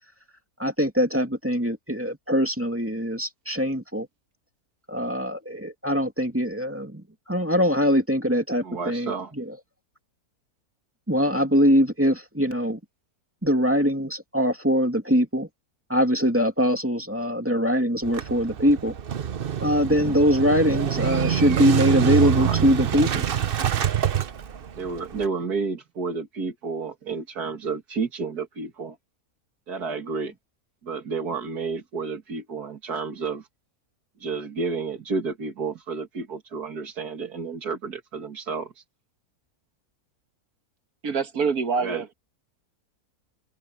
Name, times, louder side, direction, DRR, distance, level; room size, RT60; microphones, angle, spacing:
voice 1, 0.6-4.1 4.9-9.4 11.1-12.8 13.4-15.5 15.9-18.9 19.6-23.2, equal, 10° right, 2.4 m, -22 dB
voice 2, 8.6-9.3 22.2-22.6 24.8-29.0 29.7-30.3 30.8-33.5 34.2-38.8 41.8-42.1, right 4 dB, 90° right, 2.6 m, -31 dB
Motorcycle / Engine starting, 18.0-25.3, right 9 dB, 50° right, 0.8 m, -25 dB
voice 3, 41.0-42.1, right 5 dB, 70° right, 1.9 m, -25 dB
open air
omnidirectional pair, 1.6 m